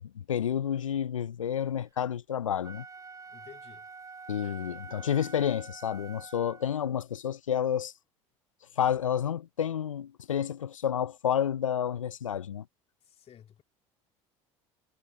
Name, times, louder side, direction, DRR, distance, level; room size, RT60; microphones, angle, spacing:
voice 1, 0.1-2.8 4.3-7.9 8.8-12.6, left 9 dB, 85° left, 0.6 m, -30 dB
Wind instrument woodwind instrument, 2.6-6.9, right 5 dB, 20° right, 0.9 m, -47 dB
voice 2, 3.3-3.9 13.0-13.6, left 9 dB, 40° left, 3.8 m, -53 dB
hypercardioid pair, 70°, 16 cm